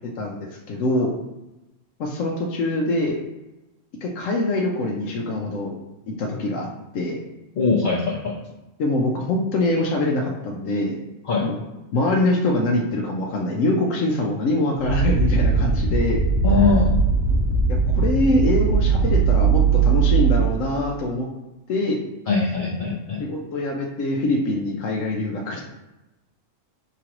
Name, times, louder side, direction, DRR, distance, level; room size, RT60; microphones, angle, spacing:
voice 1, 0.2-1.2 2.0-3.2 4.0-5.7 6.2-6.7 6.9-7.2 8.8-11.0 11.4-11.6 11.9-16.2 17.7-21.3 21.7-22.0 23.2-25.6, left 2 dB, 80° left, -1 dB, 1.0 m, -24 dB
voice 2, 7.6-8.4 11.3-11.5 16.4-17.0 22.3-23.2, left 4 dB, 55° left, -3 dB, 0.6 m, -21 dB
sound 1, 14.8-20.6, right 5 dB, 45° right, 0.8 m, -19 dB
4.9 x 3.0 x 2.9 m, 0.99 s
omnidirectional pair, 1.3 m